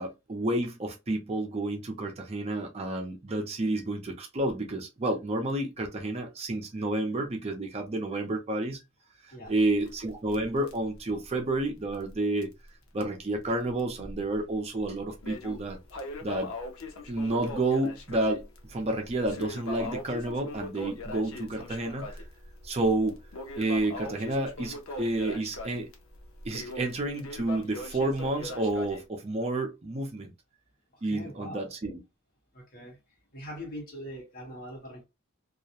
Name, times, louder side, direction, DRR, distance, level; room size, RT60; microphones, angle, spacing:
voice 1, 0.0-8.8 9.2-12.5 12.9-15.8 16.2-16.5 17.1-18.4 18.7-22.2 22.6-23.2 23.6-25.9 26.4-30.3 31.0-32.0, right 2 dB, 30° right, 0.4 m, -30 dB
Crackle, 9.5-12.2 12.4-12.5 13.0-13.1 13.8-14.4 14.8-29.0, left 2 dB, 90° left, 0.6 m, -41 dB
voice 2, 30.9-31.7 32.5-33.0 33.3-35.0, equal, 45° left, 1.2 m, -42 dB
2.3 x 2.0 x 2.7 m
head